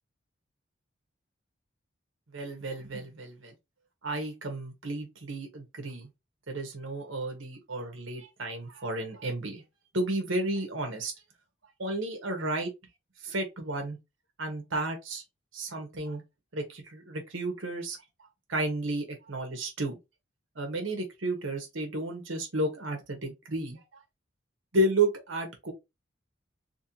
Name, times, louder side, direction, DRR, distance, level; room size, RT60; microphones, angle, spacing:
voice 1, 2.3-3.5 4.0-6.1 6.5-9.6 9.9-11.1 11.8-12.7 13.2-14.0 14.4-15.2 15.5-16.2 16.5-18.0 18.5-20.0 20.5-23.8 24.7-25.7, right 2 dB, 80° right, 1.2 m, -32 dB
3.1 x 2.8 x 3.1 m
head